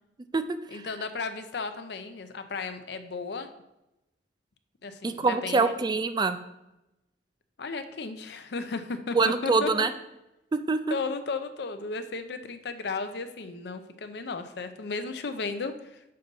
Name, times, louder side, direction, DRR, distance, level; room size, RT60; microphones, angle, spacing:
voice 1, 0.7-3.5 4.8-5.7 7.6-9.7 10.9-16.0, left 4 dB, 60° left, 9 dB, 0.5 m, -34 dB
voice 2, 5.0-6.4 9.1-9.9 10.5-11.0, right 4 dB, 25° right, 10 dB, 0.3 m, -25 dB
6.5 x 3.9 x 5.3 m, 0.93 s
head